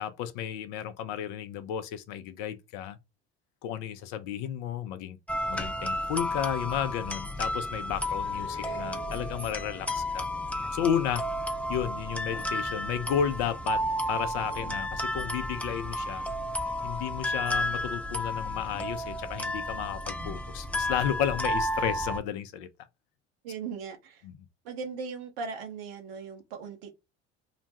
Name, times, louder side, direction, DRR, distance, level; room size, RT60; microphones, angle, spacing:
voice 1, 0.0-3.0 3.6-5.2 5.5-10.3 10.7-11.3 11.7-16.3 16.8-22.7 24.2-24.5, left 9 dB, 60° left, 0.6 m, -33 dB
sound 1, 5.3-22.2, left 1 dB, 5° left, 0.6 m, -32 dB
sound 2, 7.9-12.4, left 5 dB, 40° left, 1.1 m, -51 dB
voice 2, 23.4-24.2 24.6-26.9, right 5 dB, 65° right, 1.1 m, -38 dB
2.9 x 2.1 x 2.8 m
hypercardioid pair, 60°, 32 cm